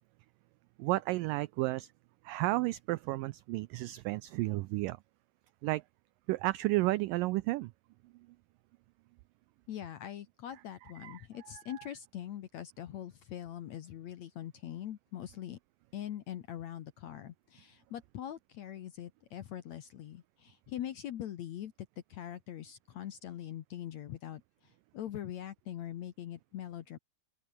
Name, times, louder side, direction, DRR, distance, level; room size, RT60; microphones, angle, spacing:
voice 1, 0.8-1.9 2.3-5.0 5.6-5.8 6.3-7.7 11.0-11.2, right 19 dB, 85° right, 1.9 m, -32 dB
voice 2, 9.7-15.6 15.9-21.7 22.1-27.0, left 11 dB, 65° left, 1.8 m, -43 dB
open air
omnidirectional pair, 4.5 m